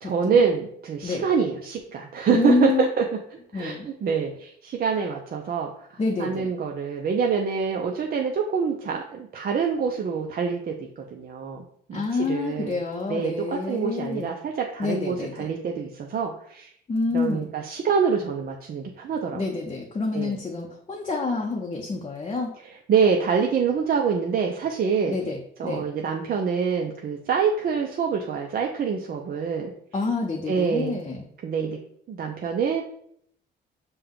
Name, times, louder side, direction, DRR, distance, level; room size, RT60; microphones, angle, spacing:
voice 1, 0.0-3.0 3.5-5.7 6.2-12.8 13.1-16.7 17.1-19.4 20.1-20.4 22.9-25.2 25.6-29.7 30.5-31.0 31.4-31.8 32.1-32.8, right 6 dB, 50° right, 1 dB, 0.5 m, -26 dB
voice 2, 2.3-2.9 3.5-3.9 6.0-6.5 11.9-14.3 14.8-15.5 16.9-17.5 19.3-22.5 25.1-25.8 29.9-31.3, left 4 dB, 30° left, 0 dB, 0.6 m, -27 dB
5.4 x 2.2 x 3.6 m, 0.67 s
cardioid pair, 90°, 20 cm